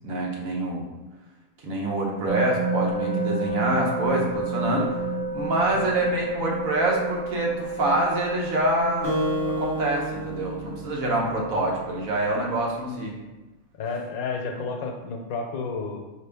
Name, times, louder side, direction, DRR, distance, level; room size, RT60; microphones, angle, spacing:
voice 1, 0.0-0.9 1.6-5.0 5.3-13.2, right 1 dB, 70° right, -2 dB, 1.3 m, -26 dB
sound 1, 2.3-9.6, right 3 dB, 50° right, 0.6 m, -29 dB
Acoustic guitar, 9.0-11.8, equal, 30° right, 1.1 m, -30 dB
voice 2, 13.8-16.0, left 4 dB, 75° left, 3 dB, 1.1 m, -31 dB
5.0 x 3.0 x 3.3 m, 1.1 s
omnidirectional pair, 1.5 m